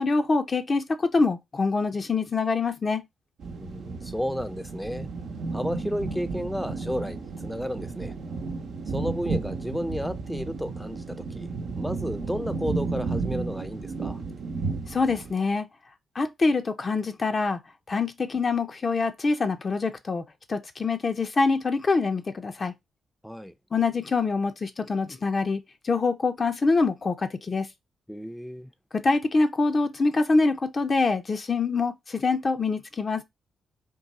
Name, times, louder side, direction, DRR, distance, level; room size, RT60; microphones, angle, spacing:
voice 1, 0.0-3.0 14.9-15.7 16.1-17.6 17.9-20.2 20.5-22.7 23.7-27.7 28.9-33.2, left 3 dB, 45° left, 0.7 m, -25 dB
sound 1, 3.4-15.3, right 4 dB, 70° right, 0.7 m, -33 dB
voice 2, 3.6-5.1 5.5-8.1 8.9-11.5 11.8-14.2 23.2-23.5 28.1-28.7, equal, 5° left, 0.6 m, -32 dB
3.8 x 2.3 x 4.1 m
supercardioid pair, 50°, 0 cm